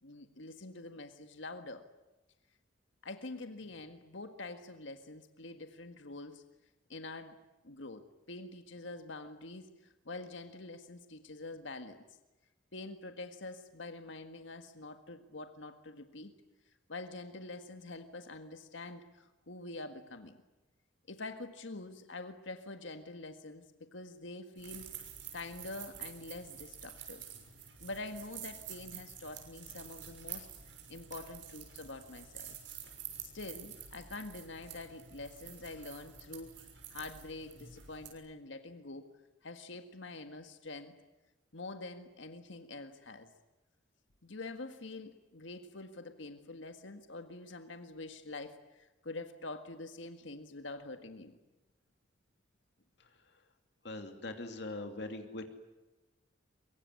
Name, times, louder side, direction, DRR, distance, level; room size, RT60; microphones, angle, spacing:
voice 1, 0.0-1.8 3.0-6.4 6.9-7.4 7.6-12.0 12.7-16.3 16.6-20.4 21.1-24.9 25.3-27.3 27.8-30.5 30.9-32.6 33.2-39.1 39.4-40.9 41.5-43.3 44.2-51.4, left 2 dB, 75° left, 7 dB, 1.7 m, -46 dB
sound 1, 24.6-38.1, right 8 dB, 70° right, 6.4 m, -49 dB
voice 2, 53.8-55.5, left 2 dB, 60° left, 6 dB, 2.7 m, -41 dB
24.0 x 23.5 x 9.7 m, 1.0 s
head